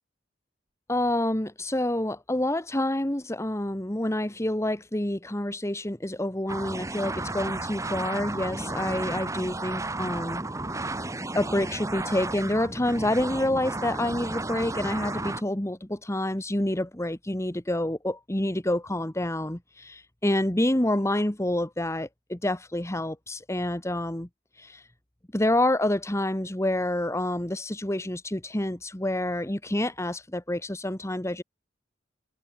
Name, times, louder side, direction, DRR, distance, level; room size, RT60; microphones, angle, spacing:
voice 1, 0.9-10.4 10.8-11.0 11.3-24.3 24.5-24.9 25.3-31.4, left 1 dB, 15° left, 1.5 m, -28 dB
sound 1, 6.5-15.4, right 2 dB, 15° right, 1.6 m, -33 dB
head